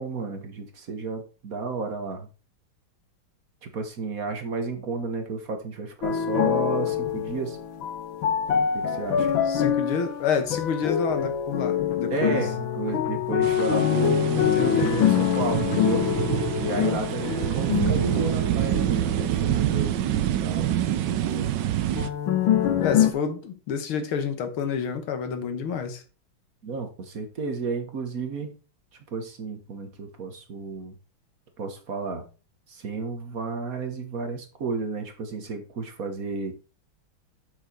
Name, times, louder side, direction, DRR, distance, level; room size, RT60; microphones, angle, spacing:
voice 1, 0.0-2.3 3.6-7.6 8.7-9.3 12.1-16.1 16.6-21.5 26.6-28.5 29.1-31.0 31.6-32.3 32.7-36.5, right 4 dB, 45° right, 1.6 m, -32 dB
sound 1, 6.0-20.6 22.0-23.1, left 9 dB, 75° left, 1.7 m, -25 dB
voice 2, 9.5-12.5 14.4-14.9 16.6-17.0 22.8-26.0, left 6 dB, 90° left, 2.1 m, -29 dB
sound 2, 13.4-22.1, right 12 dB, 70° right, 1.2 m, -27 dB
7.0 x 6.5 x 4.4 m
omnidirectional pair, 2.3 m